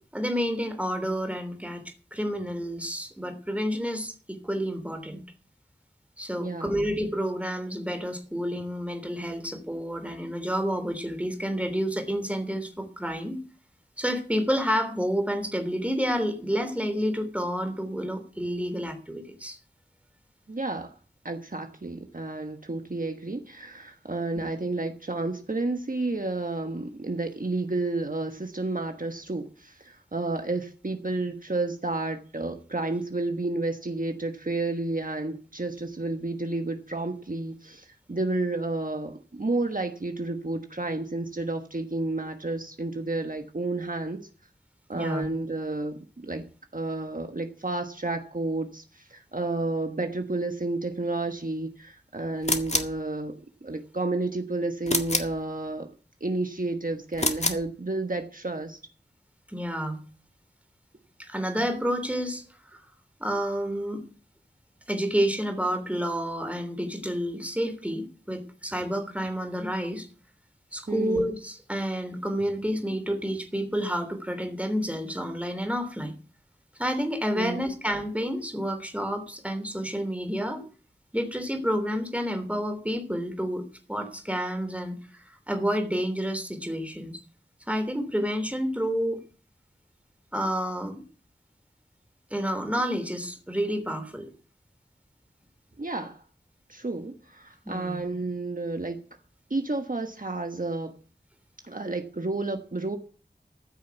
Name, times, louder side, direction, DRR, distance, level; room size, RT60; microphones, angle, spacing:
voice 1, 0.1-1.8 2.1-5.2 6.2-13.4 14.0-19.6 44.9-45.2 59.5-60.0 61.3-62.8 63.2-64.0 64.9-70.1 70.7-76.1 76.8-80.7 81.1-87.2 87.7-89.2 90.3-91.0 92.3-94.3 97.6-98.0, equal, 5° right, 6 dB, 3.4 m, -29 dB
voice 2, 6.4-6.8 20.5-20.9 21.2-44.2 44.9-46.4 46.7-55.9 56.2-58.8 70.9-71.3 77.3-77.6 95.8-96.2 96.7-99.0 99.5-100.9 101.6-103.0, right 2 dB, 50° right, 5 dB, 1.4 m, -31 dB
sound 1, 52.4-53.0 54.9-55.4 57.1-57.7, left 2 dB, 40° left, 1.8 m, -27 dB
14.5 x 6.4 x 8.2 m, 0.40 s
wide cardioid pair, 45°, 18 cm